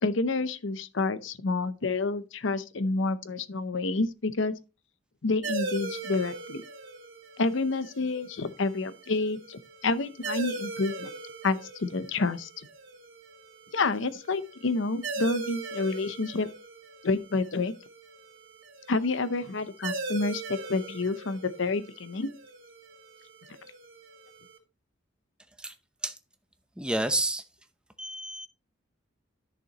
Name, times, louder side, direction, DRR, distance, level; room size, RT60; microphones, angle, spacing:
voice 1, 0.0-4.6 5.2-6.6 7.4-11.1 11.4-12.7 13.7-16.5 17.0-17.7 18.9-22.3, left 3 dB, 70° left, 0.7 m, -29 dB
sound 1, 5.4-24.6, right 3 dB, 75° right, 3.0 m, -40 dB
voice 2, 26.8-27.4 28.0-28.5, right 1 dB, 5° right, 0.7 m, -29 dB
11.0 x 6.5 x 3.0 m
head